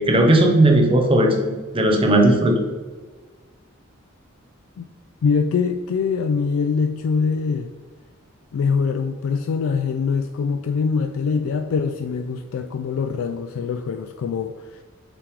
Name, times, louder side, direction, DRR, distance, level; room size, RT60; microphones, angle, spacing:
voice 1, 0.0-1.4 1.7-2.6, right 1 dB, 25° right, 2 dB, 0.7 m, -16 dB
voice 2, 5.2-7.7 8.5-14.8, left 5 dB, 80° left, 6 dB, 0.3 m, -23 dB
6.0 x 3.3 x 4.8 m, 1.4 s
head